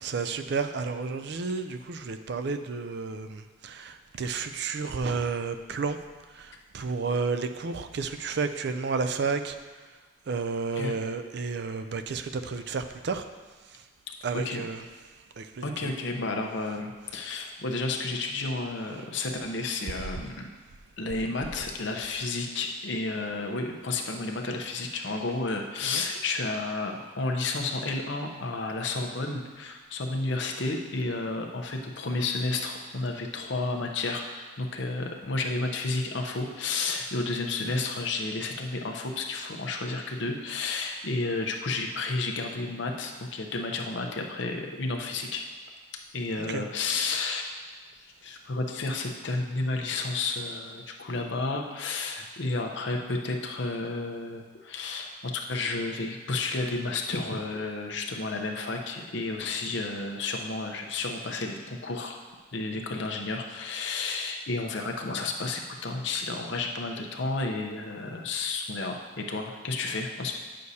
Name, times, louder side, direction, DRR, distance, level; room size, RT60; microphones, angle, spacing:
voice 1, 0.0-6.0 6.3-9.6 10.3-13.2 14.2-14.9 15.4-15.7 17.1-17.2 25.8-26.0 46.4-46.6, right 4 dB, 55° right, 9 dB, 0.4 m, -31 dB
voice 2, 15.6-20.5 21.0-45.4 46.1-47.5 48.2-62.2 62.5-70.4, left 3 dB, 60° left, 2 dB, 0.7 m, -31 dB
9.4 x 6.5 x 2.8 m, 1.4 s
head